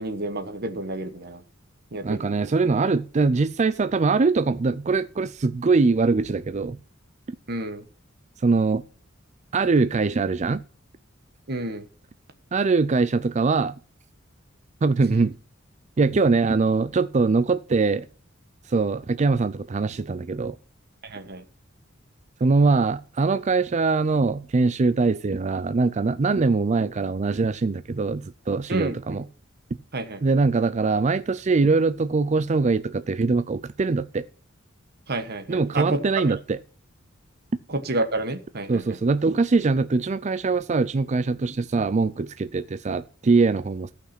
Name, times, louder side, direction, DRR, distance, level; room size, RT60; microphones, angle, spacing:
voice 1, 0.0-1.4 1.9-2.4 7.5-7.9 11.5-11.9 21.0-21.4 28.7-29.2 29.9-30.2 35.1-36.3 37.7-39.0, right 2 dB, 50° right, 1.3 m, -30 dB
voice 2, 2.0-6.8 8.4-8.8 9.5-10.6 12.5-13.7 14.8-15.3 16.0-18.1 18.7-20.6 22.4-29.2 30.2-34.3 35.5-36.6 38.7-43.9, right 4 dB, 35° right, 0.4 m, -22 dB
14.0 x 6.0 x 5.8 m
head